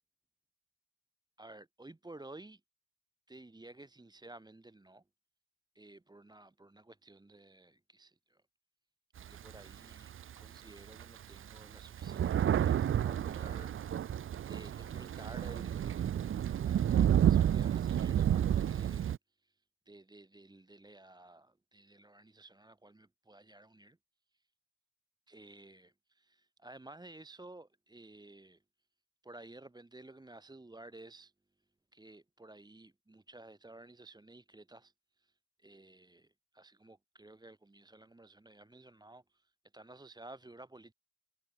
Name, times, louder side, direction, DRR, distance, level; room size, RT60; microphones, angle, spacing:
voice 1, 1.4-2.6 3.3-5.0 5.7-8.4 9.2-24.0 24.3-24.4 25.3-28.6 29.2-31.3 31.9-40.9, right 2 dB, 15° right, 2.2 m, -54 dB
Thunder, 9.2-10.4 11.0-11.1 11.3-19.2, right 10 dB, 45° right, 0.6 m, -30 dB
cardioid pair, 90°, 30 cm